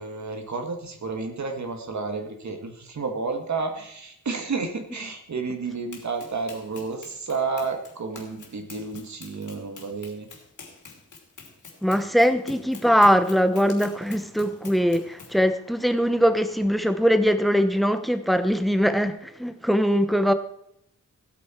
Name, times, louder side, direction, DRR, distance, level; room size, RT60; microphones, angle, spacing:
voice 1, 0.0-10.3, right 4 dB, 60° right, 2.1 m, -31 dB
Run, 5.9-15.4, left 4 dB, 75° left, 2.8 m, -46 dB
voice 2, 11.8-20.3, equal, ahead, 0.9 m, -21 dB
16.0 x 8.7 x 4.5 m
wide cardioid pair, 115°, 31 cm